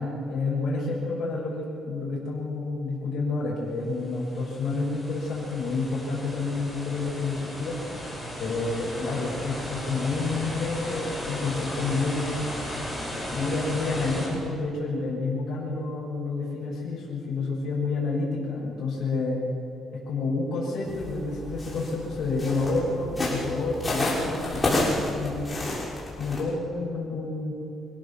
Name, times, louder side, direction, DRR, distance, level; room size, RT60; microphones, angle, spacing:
voice 1, 0.0-7.8 8.4-12.4 13.1-19.4 19.9-25.5 26.2-27.5, left 3 dB, 60° left, -6 dB, 6.5 m, -29 dB
sound 1, 4.0-14.3, equal, 5° right, 7.1 m, -36 dB
sound 2, 20.8-26.4, left 2 dB, 15° left, 6.3 m, -30 dB
26.0 x 17.0 x 7.3 m, 2.6 s
cardioid pair, 130°, 0 cm